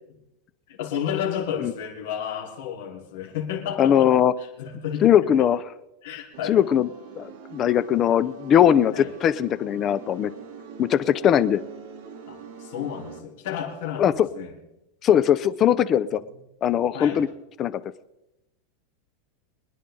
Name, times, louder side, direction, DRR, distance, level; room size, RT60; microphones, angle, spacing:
voice 1, 0.7-4.1 4.4-5.0 5.4-5.5 6.0-6.6 8.9-9.1 12.3-14.5 16.0-16.2 16.9-17.2, left 8 dB, 65° left, 1 dB, 4.0 m, -32 dB
voice 2, 3.8-4.3 5.0-5.6 6.5-6.9 7.2-10.3 10.8-11.6 14.0-14.3 15.0-16.2 16.6-17.3 17.6-17.8, left 9 dB, 25° left, 16 dB, 0.5 m, -20 dB
sound 1, 6.3-13.2, right 6 dB, 50° right, 2.6 m, -43 dB
25.5 x 10.0 x 3.8 m, 0.93 s
supercardioid pair, 160°, 0 cm